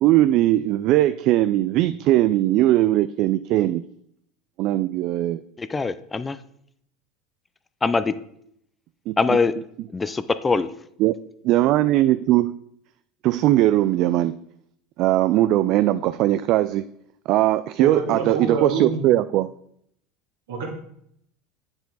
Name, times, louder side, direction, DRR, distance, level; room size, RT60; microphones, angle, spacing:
voice 1, 0.0-3.8 4.6-5.4 9.1-9.2 11.0-11.1 11.4-12.6 13.2-14.4 15.0-16.8 17.3-19.5, right 14 dB, 55° right, 14 dB, 0.3 m, -19 dB
voice 2, 5.6-6.4 7.8-8.1 9.2-9.5 9.9-10.7, left 4 dB, 20° left, 13 dB, 0.5 m, -22 dB
voice 3, 17.8-19.0 20.5-20.7, right 5 dB, 80° right, -1 dB, 2.5 m, -26 dB
8.1 x 6.9 x 4.0 m, 0.71 s
hypercardioid pair, 90°, 0 cm